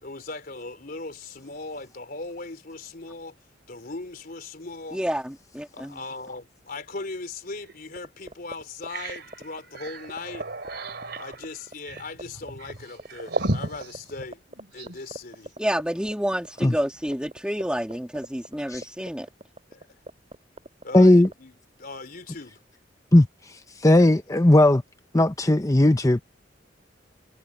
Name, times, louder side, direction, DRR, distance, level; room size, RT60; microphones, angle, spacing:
voice 1, 0.0-3.4 3.7-5.0 5.7-10.5 11.2-14.4 14.7-15.5 19.7-19.9 20.8-22.6, left 3 dB, 55° left, 3.6 m, -38 dB
voice 2, 4.9-5.9 15.6-19.3, equal, 5° right, 2.4 m, -29 dB
sound 1, 7.6-7.8 8.2-8.3 8.7-15.0, right 2 dB, 65° right, 3.3 m, -34 dB
sound 2, 8.0-21.3, right 1 dB, 35° right, 4.6 m, -38 dB
voice 3, 20.9-21.3 23.1-23.3 23.8-24.8 25.1-26.2, left 1 dB, 20° left, 0.8 m, -16 dB
head